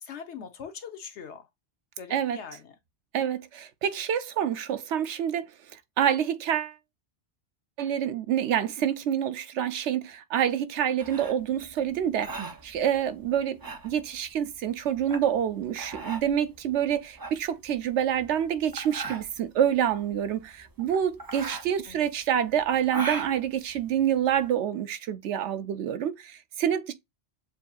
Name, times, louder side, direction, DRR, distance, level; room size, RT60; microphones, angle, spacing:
voice 1, 0.0-1.4 2.0-2.7 21.8-22.1, left 7 dB, 80° left, 1.2 m, -42 dB
voice 2, 3.1-5.5 6.0-6.8 7.8-26.9, right 9 dB, 85° right, 0.9 m, -27 dB
sound 1, 11.0-24.5, right 3 dB, 30° right, 0.4 m, -39 dB
7.0 x 2.7 x 2.3 m
omnidirectional pair, 1.1 m